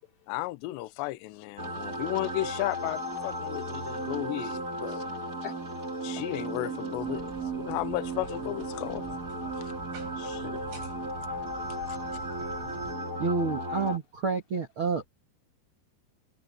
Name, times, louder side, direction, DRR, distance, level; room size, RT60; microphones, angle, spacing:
voice 1, 0.3-5.0 6.0-7.2 7.5-9.0 9.6-9.7 10.2-10.6 11.9-12.0, left 17 dB, 80° left, 2.9 m, -34 dB
sound 1, 1.6-14.0, right 1 dB, 20° right, 2.9 m, -35 dB
voice 2, 3.5-4.0 4.8-4.9 5.4-5.5 6.4-7.3 8.7-8.9 9.7-10.1 10.8-10.9 11.2-11.8 12.3-12.4 12.7-13.3, left 10 dB, 55° left, 4.5 m, -47 dB
sound 2, 7.0-13.0, right 4 dB, 90° right, 9.6 m, -47 dB
voice 3, 13.2-15.1, right 4 dB, 65° right, 1.2 m, -29 dB
omnidirectional pair, 5.4 m